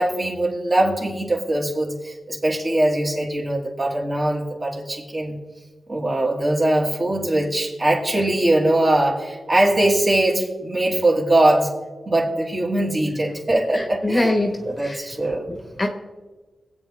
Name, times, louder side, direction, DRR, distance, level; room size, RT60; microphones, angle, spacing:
voice 1, 0.0-5.4 5.9-11.7 12.1-14.3 14.6-15.5, right 1 dB, 30° right, -1 dB, 2.7 m, -21 dB
voice 2, 14.0-15.0 15.5-15.9, left 1 dB, 25° left, 4 dB, 1.3 m, -23 dB
23.0 x 8.6 x 3.5 m, 1.3 s
wide cardioid pair, 110°, 0 cm